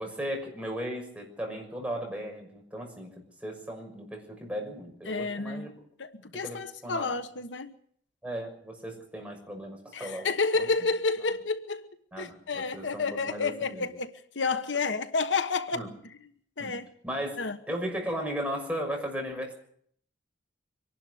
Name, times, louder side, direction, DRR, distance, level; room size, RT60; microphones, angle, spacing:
voice 1, 0.0-5.7 6.4-7.1 8.2-10.3 10.5-10.7 12.1-13.9 15.7-15.9 16.6-16.7 17.0-17.4 17.7-19.5, equal, 5° right, 6.2 m, -36 dB
voice 2, 5.1-5.7 6.0-7.8 9.9-11.9 12.2-16.1 16.6-16.9 17.4-17.6, left 4 dB, 70° left, 1.2 m, -30 dB
24.5 x 12.0 x 9.6 m
head